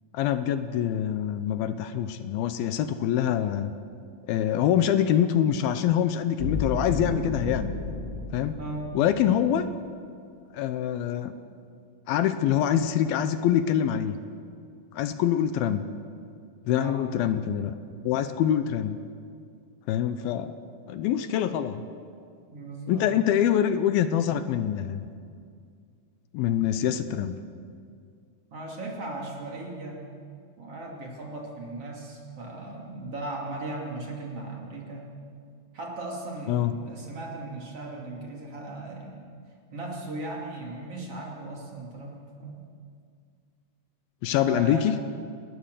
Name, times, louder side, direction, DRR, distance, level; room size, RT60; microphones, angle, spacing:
voice 1, 0.1-3.7 4.3-7.7 8.3-8.6 8.9-9.7 10.5-11.3 12.1-14.2 14.9-15.8 16.7-17.8 18.0-19.0 19.9-20.5 20.9-21.8 22.9-25.0 26.3-27.4 36.5-36.7 44.2-44.9, left 10 dB, 80° left, 11 dB, 2.5 m, -25 dB
sound 1, 6.4-9.6, left 2 dB, 15° right, 5.3 m, -32 dB
voice 2, 8.5-9.0 16.7-17.1 22.5-23.1 28.5-30.1 30.6-35.1 35.7-39.3 39.7-42.6 44.2-45.0, right 2 dB, 40° right, -1 dB, 3.3 m, -37 dB
29.5 x 13.0 x 6.7 m, 2.3 s
omnidirectional pair, 4.4 m